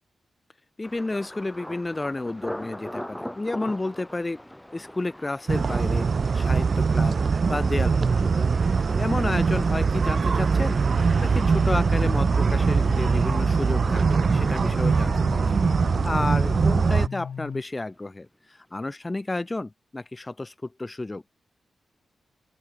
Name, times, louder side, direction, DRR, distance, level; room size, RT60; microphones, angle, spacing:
voice 1, 0.8-4.4 4.7-6.1 6.3-7.2 7.5-8.5 9.0-15.4 16.0-21.2, left 2 dB, 20° left, 0.4 m, -31 dB
Thunder, 0.8-16.6 16.8-17.5 17.9-18.2, left 1 dB, 5° left, 6.9 m, -43 dB
sound 1, 5.5-17.1, right 5 dB, 50° right, 0.6 m, -22 dB
sound 2, 10.9-17.6, left 7 dB, 70° left, 0.8 m, -37 dB
open air
wide cardioid pair, 110°, 0 cm